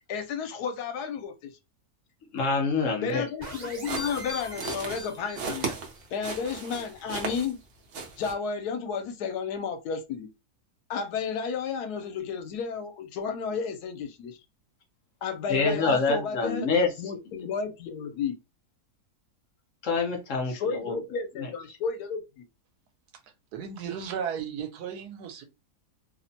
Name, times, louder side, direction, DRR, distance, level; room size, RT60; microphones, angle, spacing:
voice 1, 0.1-1.5 3.0-5.8 6.1-7.6 8.2-10.3 10.9-14.4 15.2-16.7 17.0-18.4 20.5-22.4, left 6 dB, 80° left, 1.1 m, -32 dB
voice 2, 2.3-3.2 15.5-16.9 19.8-21.0 21.4-21.5, left 4 dB, 60° left, 0.9 m, -26 dB
sound 1, 3.4-5.8, equal, 40° right, 1.3 m, -41 dB
sound 2, 3.5-7.6 7.9-8.3, right 4 dB, 60° right, 0.9 m, -36 dB
voice 3, 23.5-25.4, right 7 dB, 80° right, 1.2 m, -34 dB
2.9 x 2.1 x 2.6 m
omnidirectional pair, 1.7 m